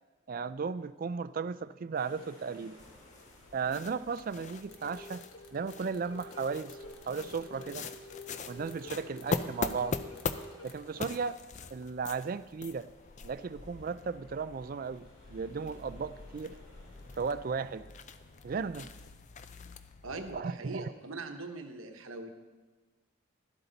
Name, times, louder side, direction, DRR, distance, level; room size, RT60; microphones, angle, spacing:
voice 1, 0.3-2.8 3.5-5.2 5.5-6.8 7.1-7.9 8.5-10.0 10.6-11.4 11.7-12.9 13.2-16.6 17.2-17.9 18.4-18.9 20.3-20.9, right 5 dB, 40° right, 15 dB, 0.3 m, -35 dB
sound 1, 1.9-19.0, left 1 dB, 55° left, 4.2 m, -60 dB
sound 2, 2.8-20.4, left 4 dB, 35° left, 0.4 m, -42 dB
sound 3, 4.7-10.8, left 3 dB, 75° left, 1.2 m, -48 dB
voice 2, 20.0-22.3, right 3 dB, 70° right, 5 dB, 1.0 m, -41 dB
12.0 x 12.0 x 4.0 m, 1.3 s
head